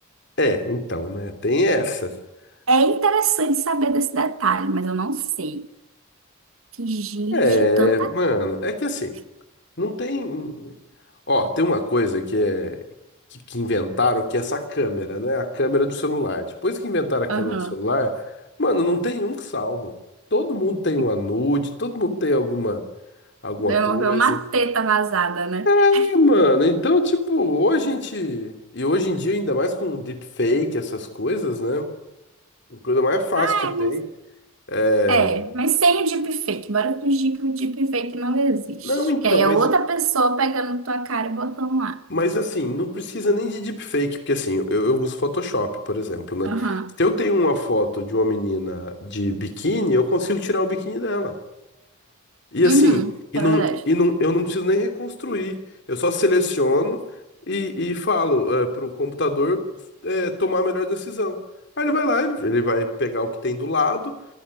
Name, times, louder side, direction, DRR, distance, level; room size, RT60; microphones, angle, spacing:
voice 1, 0.4-2.1 7.3-9.1 9.8-10.8 11.3-12.8 13.3-18.2 18.6-19.9 20.3-22.8 23.4-24.4 25.6-31.9 32.7-34.0 34.7-35.4 38.8-39.6 42.1-46.6 47.0-51.4 52.5-53.0 53.3-55.6 55.9-57.0 57.5-59.6 60.0-61.4 61.8-64.1, left 1 dB, 55° left, 2.9 m, -22 dB
voice 2, 2.7-5.7 6.8-8.1 17.3-17.7 23.6-25.7 25.9-26.1 33.4-34.0 35.1-38.9 39.2-42.0 46.4-46.9 52.6-53.1 53.4-53.8, right 3 dB, 80° right, 1.3 m, -22 dB
26.5 x 15.0 x 9.8 m
head